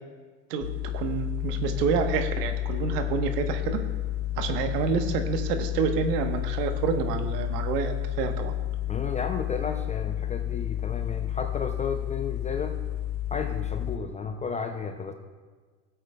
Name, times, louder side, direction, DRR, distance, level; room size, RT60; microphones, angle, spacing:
sound 1, 0.6-14.0, left 13 dB, 85° left, 1.0 m, -31 dB
voice 1, 0.9-3.8 4.4-8.5, right 6 dB, 75° right, 7 dB, 1.2 m, -28 dB
voice 2, 8.9-12.8 13.3-15.1, left 5 dB, 15° left, 6 dB, 0.3 m, -33 dB
18.5 x 8.0 x 2.2 m, 1.5 s
hypercardioid pair, 90°, 49 cm